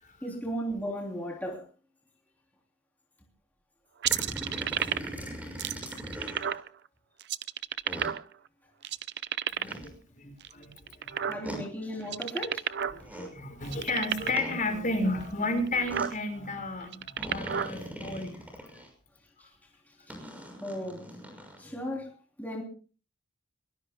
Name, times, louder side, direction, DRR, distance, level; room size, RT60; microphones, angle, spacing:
voice 1, 0.2-1.6 11.3-12.6 13.1-13.2 19.4-19.5 20.1-20.2 20.6-22.1 22.4-22.6, equal, 10° left, 3.2 m, -36 dB
sound 1, 4.0-6.5 7.9-8.1 9.6-9.9 11.4-11.6 12.9-13.3 14.4-14.6 15.9-16.1 17.2-18.9 20.1-21.6, equal, 5° right, 6.0 m, -40 dB
sound 2, 4.0-5.2 5.6-6.7 7.2-8.5 8.8-9.9 10.4-11.7 12.0-13.0 13.3-13.4 13.6-14.5 15.2-15.3 15.7-16.1 16.8-17.7, right 9 dB, 55° right, 0.6 m, -31 dB
voice 2, 9.6-11.4 12.9-18.4 18.7-18.8, left 2 dB, 40° left, 5.4 m, -33 dB
23.0 x 22.5 x 2.2 m
head